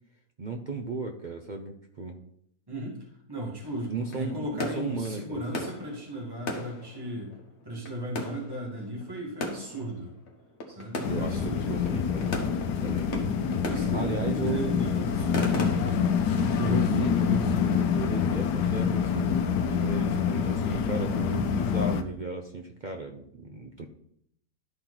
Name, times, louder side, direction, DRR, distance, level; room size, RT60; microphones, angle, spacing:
voice 1, 0.4-2.2 3.9-5.7 11.1-12.3 12.8-13.0 13.9-14.7 16.6-19.3 19.7-23.9, right 3 dB, 50° right, 3 dB, 0.5 m, -35 dB
voice 2, 2.7-3.0 3.3-7.3 7.6-10.1 10.7-11.8 13.1-13.3 13.7-15.5 16.6-16.8, equal, 15° right, -1 dB, 1.8 m, -36 dB
sound 1, 3.6-19.4, left 1 dB, 45° left, 1.4 m, -39 dB
sound 2, 11.0-22.0, left 7 dB, 85° left, 1.3 m, -26 dB
12.5 x 4.4 x 3.9 m, 0.69 s
omnidirectional pair, 1.7 m